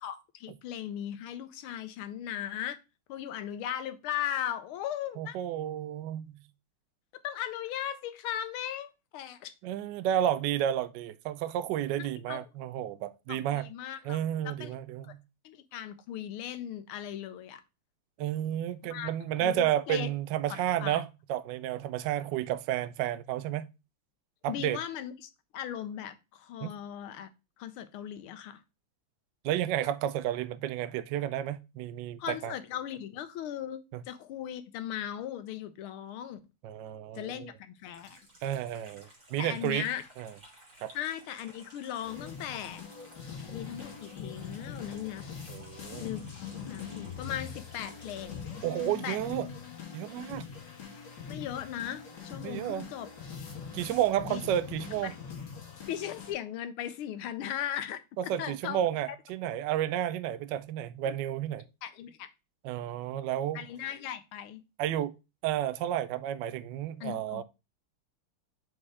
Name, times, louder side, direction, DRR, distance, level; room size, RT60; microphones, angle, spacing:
voice 1, 0.0-2.8 3.1-5.4 7.2-9.5 12.0-12.4 13.3-14.2 14.4-14.7 15.4-17.6 18.8-19.1 19.4-20.1 20.5-21.0 24.5-27.3 27.6-28.6 32.2-33.8 34.1-36.4 37.1-38.2 39.4-40.1 40.9-42.9 43.5-45.2 46.0-48.5 49.0-49.2 51.3-53.1 54.2-54.4 55.0-55.1 55.9-58.8 61.0-61.1 61.8-62.3 63.5-64.6 67.0-67.4, left 10 dB, 80° left, 1.6 m, -38 dB
voice 2, 5.2-6.4 9.6-13.7 14.0-15.2 18.2-23.7 24.4-24.8 26.6-26.7 29.4-32.5 33.9-34.0 36.6-37.5 38.4-39.9 40.2-40.3 40.8-40.9 45.5-46.1 48.6-49.5 49.9-50.4 52.4-52.9 53.7-55.1 58.2-61.6 62.6-63.6 64.8-65.1 65.4-67.4, right 11 dB, 75° right, 1.0 m, -31 dB
Water tap faucet / Sink (filling or washing), 37.9-48.2, right 1 dB, 40° right, 2.5 m, -56 dB
sound 1, 42.0-56.3, left 6 dB, 60° left, 2.2 m, -43 dB
4.9 x 4.4 x 4.8 m
omnidirectional pair, 2.3 m